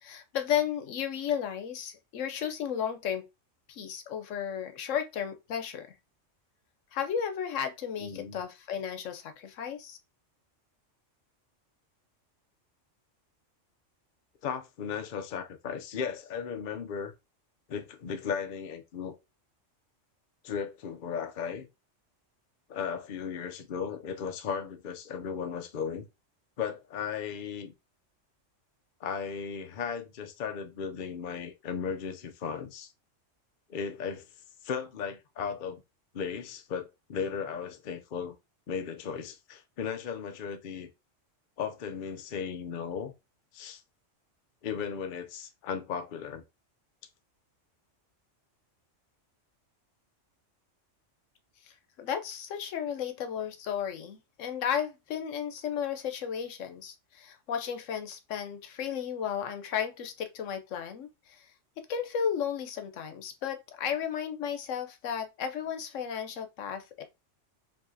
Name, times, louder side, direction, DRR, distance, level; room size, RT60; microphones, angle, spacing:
voice 1, 0.0-3.2 3.7-5.9 6.9-10.0 52.0-61.4 61.9-67.0, left 8 dB, 80° left, 1.1 m, -34 dB
voice 2, 8.0-8.4 14.4-17.1 17.7-19.2 20.4-21.7 22.7-26.1 26.6-27.7 29.0-32.9 33.7-34.3 34.6-35.8 36.1-38.4 38.7-40.9 41.6-43.1 43.5-43.8 44.6-46.4, left 7 dB, 50° left, 0.7 m, -36 dB
4.7 x 3.2 x 2.6 m
omnidirectional pair, 1.3 m